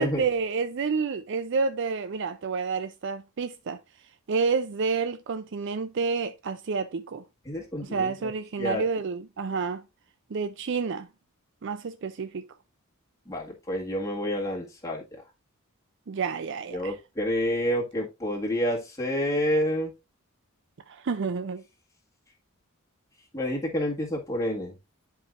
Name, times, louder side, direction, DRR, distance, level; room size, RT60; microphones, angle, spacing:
voice 1, 0.0-3.8 4.3-7.2 7.8-9.8 10.3-11.1 11.6-12.5 16.1-17.0 20.9-21.6, right 5 dB, 55° right, 0.5 m, -29 dB
voice 2, 7.4-8.3 8.6-8.8 13.3-15.2 16.7-19.9 23.3-24.7, equal, 15° left, 1.7 m, -29 dB
11.0 x 4.7 x 2.5 m
head